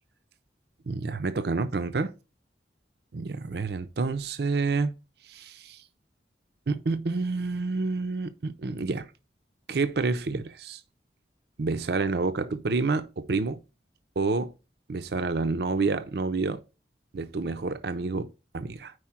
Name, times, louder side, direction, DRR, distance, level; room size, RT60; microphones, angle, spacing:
voice 1, 0.9-2.1 3.1-4.9 5.2-5.8 6.7-9.1 9.7-10.8 11.6-13.6 14.2-14.5 14.9-16.6 17.1-18.9, right 3 dB, 65° right, 0.5 m, -28 dB
4.9 x 4.8 x 5.8 m
head